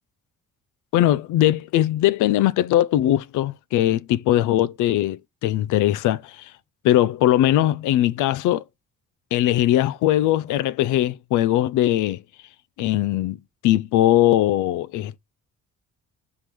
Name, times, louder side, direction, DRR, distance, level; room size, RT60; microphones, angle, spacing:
voice 1, 0.9-6.5 6.8-8.6 9.3-12.2 12.8-15.2, left 13 dB, 85° left, 0.5 m, -20 dB
5.9 x 3.7 x 4.7 m
cardioid pair, 90°, 30 cm